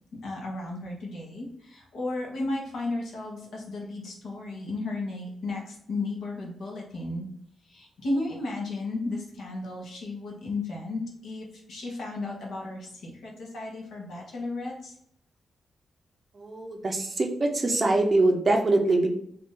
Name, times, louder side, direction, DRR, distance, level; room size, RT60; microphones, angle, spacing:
voice 1, 0.2-7.3 7.7-14.9, left 2 dB, 80° left, -2 dB, 1.1 m, -34 dB
voice 2, 16.4-19.1, right 2 dB, 30° right, 2 dB, 0.5 m, -23 dB
2.8 x 2.6 x 3.7 m, 0.69 s
wide cardioid pair, 155°, 0 cm